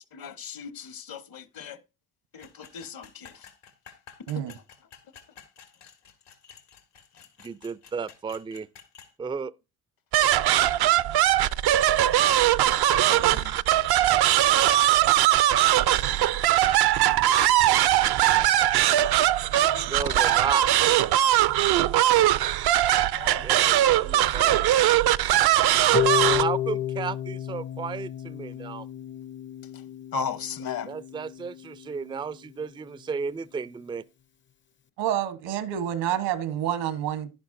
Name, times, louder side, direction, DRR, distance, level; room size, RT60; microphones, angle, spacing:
voice 1, 0.1-1.8 2.3-3.5 13.1-13.6 19.5-20.2 23.1-23.5 24.3-24.6 29.7-29.8 30.1-30.9, left 6 dB, 55° left, 1.2 m, -37 dB
sound 1, 2.4-9.1, left 7 dB, 80° left, 2.1 m, -51 dB
voice 2, 7.4-8.7 9.2-9.5 19.9-20.7 23.4-24.7 26.2-28.9 30.9-34.0, right 6 dB, 10° right, 0.4 m, -33 dB
sound 2, 10.1-26.4, right 13 dB, 65° right, 0.6 m, -21 dB
Harp, 25.9-32.0, left 12 dB, 30° left, 0.6 m, -31 dB
voice 3, 35.0-37.3, right 10 dB, 80° right, 1.3 m, -28 dB
11.0 x 10.5 x 2.6 m
supercardioid pair, 60°, 41 cm